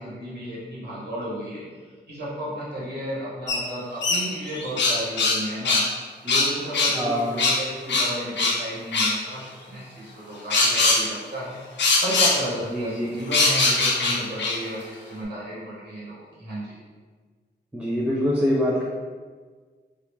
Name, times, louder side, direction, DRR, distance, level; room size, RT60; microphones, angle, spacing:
voice 1, 0.0-5.8 6.2-16.8, equal, 70° right, -8 dB, 1.1 m, -33 dB
sound 1, 3.5-3.6 4.0-5.4 5.6-5.9 6.3-7.0 7.4-7.6 7.9-8.6 8.9-9.1 10.5-11.0 11.8-12.4 13.3-14.6, left 3 dB, 80° left, 0.6 m, -21 dB
voice 2, 6.9-7.4 12.7-13.2 17.7-18.8, equal, 5° right, -4 dB, 0.3 m, -24 dB
3.3 x 2.3 x 3.1 m, 1.5 s
wide cardioid pair, 170°, 18 cm